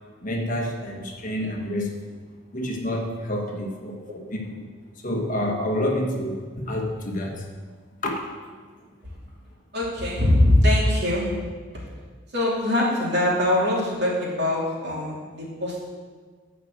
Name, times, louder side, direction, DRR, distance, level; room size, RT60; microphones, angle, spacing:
voice 1, 0.2-2.2 2.5-4.7 5.0-7.4 8.0-8.3, left 1 dB, 40° left, 1 dB, 1.3 m, -28 dB
voice 2, 9.7-11.3 12.3-15.9, left 1 dB, 55° right, -4 dB, 2.9 m, -22 dB
11.0 x 5.1 x 7.7 m, 1.5 s
head